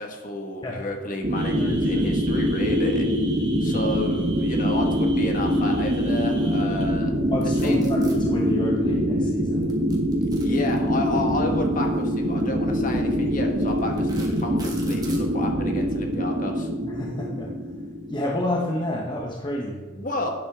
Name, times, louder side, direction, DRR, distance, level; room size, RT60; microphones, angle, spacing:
voice 1, 0.0-3.1 3.6-7.1 7.6-8.0 10.4-16.7 19.9-20.3, left 2 dB, 45° left, 3 dB, 1.6 m, -31 dB
sound 1, 1.2-18.9, equal, 40° right, 0.9 m, -24 dB
sound 2, 1.3-6.8, right 5 dB, 65° right, 2.9 m, -43 dB
voice 2, 1.6-2.1 3.8-3.9 7.3-9.7 16.8-17.5 18.1-19.9, left 1 dB, 25° left, -1 dB, 1.0 m, -29 dB
sound 3, 7.4-8.2 9.6-11.1 12.2-12.4 13.0-13.1 13.7-15.3, right 4 dB, 20° right, 1.6 m, -43 dB
12.0 x 9.5 x 3.7 m, 1.4 s
head